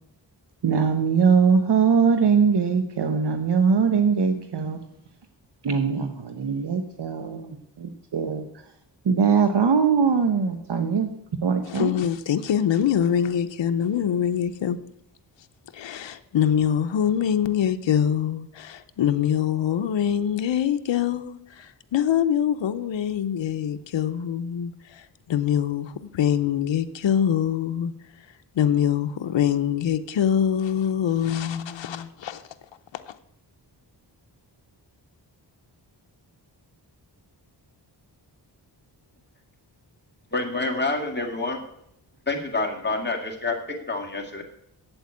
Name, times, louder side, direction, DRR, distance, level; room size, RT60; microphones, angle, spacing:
voice 1, 0.6-4.8 5.6-8.4 9.1-11.1 11.4-11.9, right 6 dB, 70° right, 1.0 m, -21 dB
voice 2, 11.7-14.8 15.7-27.9 28.5-32.4 33.1-33.2, left 9 dB, 90° left, 0.7 m, -24 dB
voice 3, 40.3-41.6 42.3-44.4, left 3 dB, 25° left, 2.1 m, -27 dB
8.3 x 8.0 x 8.5 m
wide cardioid pair, 100°, 43 cm